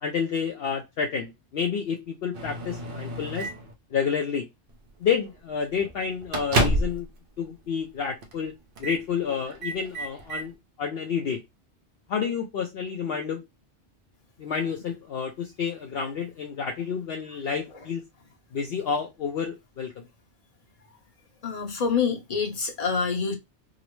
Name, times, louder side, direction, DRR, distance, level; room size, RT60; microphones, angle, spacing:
voice 1, 0.0-3.5 3.9-4.5 5.0-7.1 7.4-8.5 8.8-11.4 12.1-13.4 14.4-18.1 18.5-20.0, left 6 dB, 65° left, 0.8 m, -29 dB
Microwave oven, 2.3-3.7 4.7-4.9 5.3-5.4 5.8-7.1 7.4-7.5 8.2-8.5 8.7-9.0 9.4-10.5, right 1 dB, 55° right, 0.9 m, -29 dB
voice 2, 21.4-23.3, left 5 dB, 35° left, 1.0 m, -26 dB
3.7 x 2.0 x 3.0 m
omnidirectional pair, 1.2 m